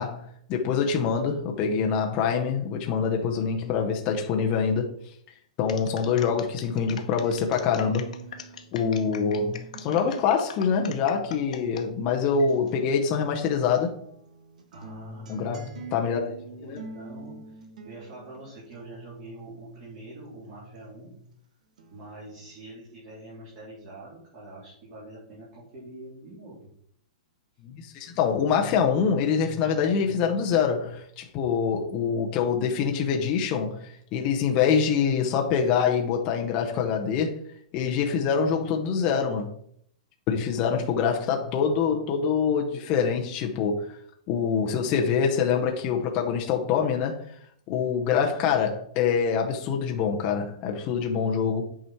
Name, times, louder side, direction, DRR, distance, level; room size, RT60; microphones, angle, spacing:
voice 1, 0.0-4.9 5.6-8.1 8.7-13.9 15.3-16.2 16.7-16.8 27.6-37.4 37.7-39.5 40.3-44.0 44.3-47.2 47.7-51.6, left 6 dB, 25° left, 0.8 m, -25 dB
sound 1, 5.7-11.9 12.3-12.7, left 8 dB, 75° left, 1.1 m, -43 dB
sound 2, 6.7-13.4 13.8-21.4 21.8-22.7, right 3 dB, 80° right, 1.4 m, -46 dB
voice 2, 14.7-21.1 21.9-26.7, right 1 dB, 35° right, 3.5 m, -45 dB
8.4 x 4.9 x 4.4 m
supercardioid pair, 175°, 4 cm